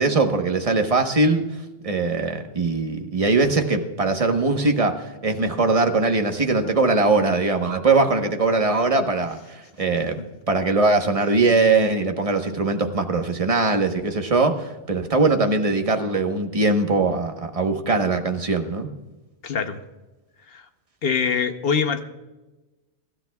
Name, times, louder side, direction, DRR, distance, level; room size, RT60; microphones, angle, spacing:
voice 1, 0.0-1.4 1.8-10.2 10.5-18.9, right 3 dB, 30° right, 5 dB, 1.1 m, -21 dB
voice 2, 19.4-19.8 20.5-20.7 21.0-22.0, left 6 dB, 60° left, 8 dB, 1.1 m, -24 dB
23.5 x 12.5 x 2.3 m, 1.1 s
omnidirectional pair, 1.2 m